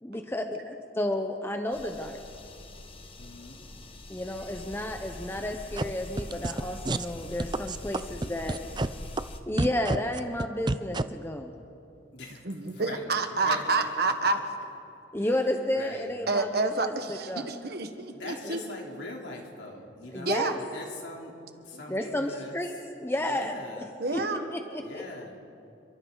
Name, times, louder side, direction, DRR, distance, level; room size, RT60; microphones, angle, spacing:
voice 1, 0.0-2.2 4.1-8.6 9.5-11.5 15.1-17.5 18.5-18.6 20.1-20.5 21.9-22.7 23.0-23.8 24.1-24.2 24.5-25.0, left 1 dB, 15° left, 4 dB, 0.9 m, -32 dB
sound 1, 1.7-9.4, left 1 dB, 30° left, 1.3 m, -43 dB
voice 2, 3.2-3.6 12.1-14.4 15.2-15.3 15.7-16.1 18.1-22.6 23.2-23.9 24.8-25.4, left 2 dB, 70° left, -1 dB, 3.7 m, -42 dB
sound 2, 5.8-5.9 6.2-6.6 6.9-7.1 7.4-8.9 9.2-9.3 9.6-11.0, right 2 dB, 25° right, 0.5 m, -27 dB
voice 3, 12.4-14.4 16.3-18.6 20.3-20.6 24.0-24.5, right 3 dB, 55° right, 6 dB, 1.5 m, -28 dB
29.5 x 23.5 x 4.1 m, 2.6 s
head